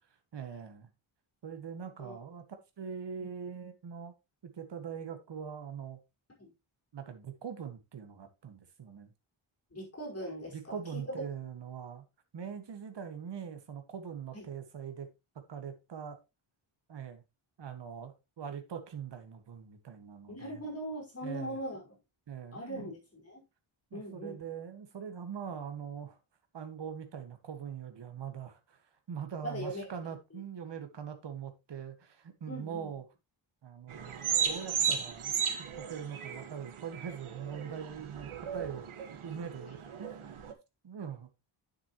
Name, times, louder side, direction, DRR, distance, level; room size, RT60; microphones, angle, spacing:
voice 1, 0.3-0.9 1.4-2.4 2.8-4.1 4.5-6.0 6.9-9.1 10.5-12.0 12.3-15.1 15.5-16.2 16.9-17.2 17.6-20.6 21.2-21.6 22.3-22.9 23.9-26.2 26.5-28.8 29.1-33.0 33.6-35.3 35.7-40.3 40.8-41.3, right 7 dB, 55° right, 1.8 m, -42 dB
voice 2, 9.7-11.1 14.3-14.5 20.3-21.9 22.5-23.4 23.9-24.4 29.4-29.9 32.5-32.9, right 1 dB, 30° left, 5.0 m, -40 dB
sound 1, 33.9-40.5, right 7 dB, 75° right, 1.6 m, -35 dB
9.6 x 7.4 x 3.1 m
wide cardioid pair, 140°, 49 cm